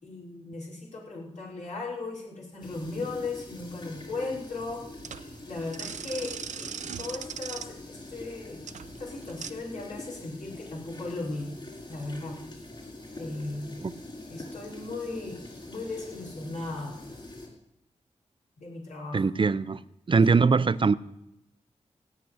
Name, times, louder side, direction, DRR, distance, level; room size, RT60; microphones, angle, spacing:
voice 1, 0.0-4.8 5.4-6.7 7.0-8.6 9.0-11.5 11.9-12.4 13.2-13.8 14.3-15.4 15.7-17.0 18.6-19.3, left 3 dB, 90° left, -5 dB, 5.3 m, -37 dB
sound 1, 2.6-17.5, left 2 dB, 40° left, 4.8 m, -44 dB
sound 2, 4.5-9.5, right 7 dB, 85° right, 0.6 m, -40 dB
voice 2, 19.1-19.8 20.1-20.9, right 4 dB, 45° right, 15 dB, 0.6 m, -22 dB
17.0 x 6.0 x 9.5 m, 0.84 s
wide cardioid pair, 75°, 12 cm